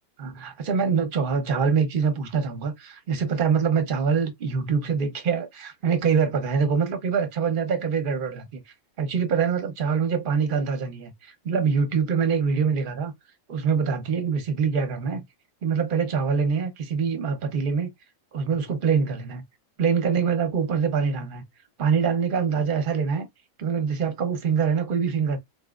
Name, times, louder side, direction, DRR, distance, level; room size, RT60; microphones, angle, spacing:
voice 1, 0.2-8.6 9.0-13.1 13.5-15.2 15.6-17.9 18.3-19.4 19.8-21.4 21.8-23.3 23.6-25.4, right 6 dB, 45° right, 1.0 m, -24 dB
4.3 x 3.0 x 2.4 m
omnidirectional pair, 1.4 m